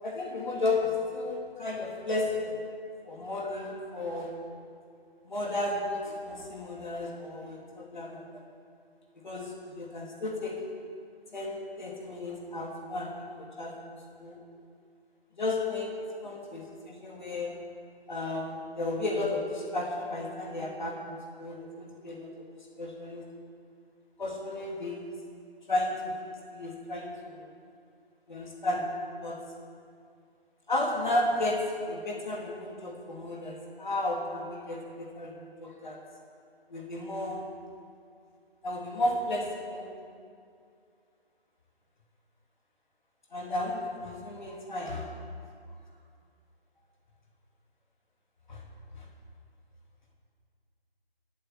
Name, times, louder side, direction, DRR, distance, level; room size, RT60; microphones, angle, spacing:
voice 1, 0.0-2.6 3.1-4.3 5.2-8.4 9.2-10.6 11.3-13.7 14.2-14.4 15.4-15.9 16.2-17.5 18.1-22.4 22.8-23.2 24.2-25.1 25.7-27.4 28.3-28.8 29.2-29.4 30.7-35.3 35.6-36.0 36.7-37.4 38.6-39.9 43.3-45.1 48.5-48.6 49.0-49.1, left 2 dB, 50° left, -2 dB, 3.0 m, -33 dB
16.0 x 8.9 x 7.9 m, 2.3 s
figure-of-eight pair, 155°, 31 cm